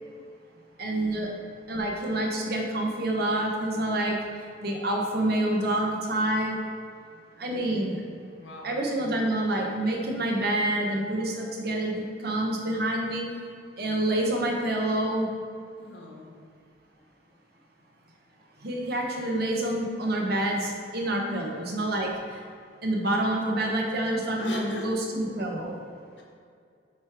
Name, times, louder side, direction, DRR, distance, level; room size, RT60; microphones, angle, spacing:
voice 1, 0.8-1.3 1.7-6.6 7.4-8.0 8.6-13.2 13.8-15.3 18.6-22.4 22.8-25.8, right 1 dB, 60° right, 0 dB, 1.1 m, -27 dB
voice 2, 7.5-7.9 8.4-8.7 15.8-16.4 21.3-21.5 24.4-24.9 26.2-26.3, left 2 dB, 80° left, -2 dB, 1.3 m, -40 dB
8.2 x 3.2 x 4.7 m, 2.3 s
head